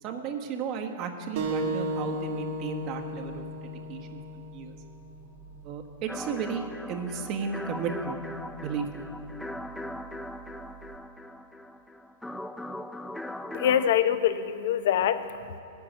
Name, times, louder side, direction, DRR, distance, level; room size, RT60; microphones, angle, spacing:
voice 1, 0.0-4.8 5.6-8.2 8.6-9.1, right 6 dB, 40° right, 4 dB, 1.3 m, -34 dB
sound 1, 1.4-6.5, equal, 60° right, 1.9 m, -35 dB
sound 2, 6.1-13.9, left 1 dB, 5° left, 0.4 m, -40 dB
voice 2, 13.5-15.6, left 10 dB, 65° left, 12 dB, 0.7 m, -25 dB
10.5 x 6.9 x 8.9 m, 2.9 s
hypercardioid pair, 115°, 0 cm